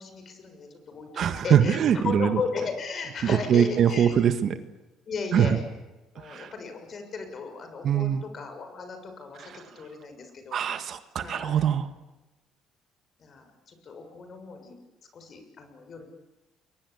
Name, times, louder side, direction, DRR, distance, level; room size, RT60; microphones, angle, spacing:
voice 1, 0.0-1.8 2.0-4.1 5.1-5.6 6.1-10.6 11.2-11.6 13.2-14.8 15.1-16.0, left 4 dB, 45° left, 6 dB, 6.5 m, -36 dB
voice 2, 1.2-2.4 3.2-4.6 5.3-5.6 6.2-6.5 7.8-8.2 10.5-11.9, right 9 dB, 55° right, 10 dB, 1.7 m, -23 dB
28.5 x 22.5 x 8.5 m, 1.1 s
cardioid pair, 110°, 0 cm